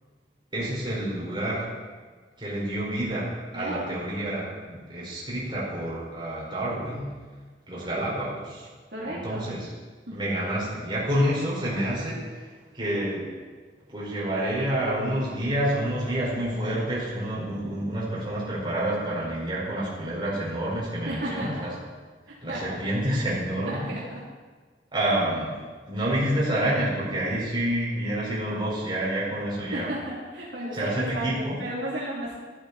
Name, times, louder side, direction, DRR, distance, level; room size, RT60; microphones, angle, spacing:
voice 1, 0.5-1.7 2.4-7.1 7.7-8.7 9.1-9.6 10.1-13.2 13.9-21.7 22.4-24.0 24.9-25.5 25.9-29.9 30.7-31.6, right 1 dB, 25° right, -6 dB, 4.9 m, -28 dB
voice 2, 1.3-1.8 3.5-3.8 7.8-8.3 8.9-9.4 10.1-10.2 21.1-21.7 22.5-22.8 23.7-24.2 25.0-25.1 29.7-32.4, right 1 dB, 70° right, -6 dB, 3.1 m, -34 dB
14.0 x 12.0 x 4.2 m, 1.5 s
head